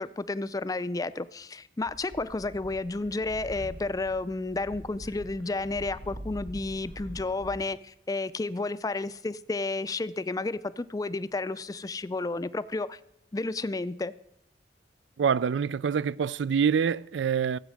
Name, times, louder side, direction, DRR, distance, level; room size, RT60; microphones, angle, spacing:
voice 1, 0.0-13.0 13.3-14.1, left 3 dB, 20° left, 0.4 m, -31 dB
sound 1, 1.8-7.7, equal, 55° right, 1.4 m, -44 dB
voice 2, 15.2-17.6, right 7 dB, 90° right, 0.4 m, -26 dB
16.0 x 8.2 x 6.3 m
head